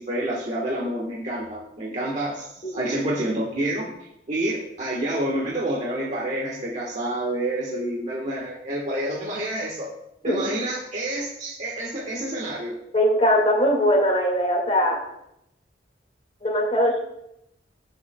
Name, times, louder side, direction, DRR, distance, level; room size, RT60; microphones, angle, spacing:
voice 1, 0.0-4.0 4.3-9.9 10.2-12.7, right 1 dB, 40° right, -3 dB, 1.3 m, -28 dB
voice 2, 12.9-15.0 16.4-17.0, equal, 35° left, 1 dB, 2.0 m, -21 dB
15.0 x 7.1 x 2.3 m, 0.80 s
head